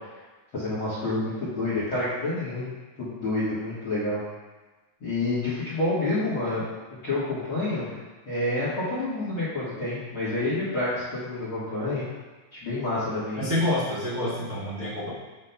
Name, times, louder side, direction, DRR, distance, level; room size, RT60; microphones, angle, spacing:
voice 1, 0.5-2.7 3.0-4.2 5.0-6.6 7.0-7.9 8.2-12.0 12.5-13.4, left 2 dB, 75° left, -11 dB, 1.1 m, -28 dB
voice 2, 13.3-15.1, left 1 dB, 85° right, -9 dB, 0.8 m, -27 dB
9.2 x 5.5 x 2.2 m, 1.2 s
omnidirectional pair, 4.9 m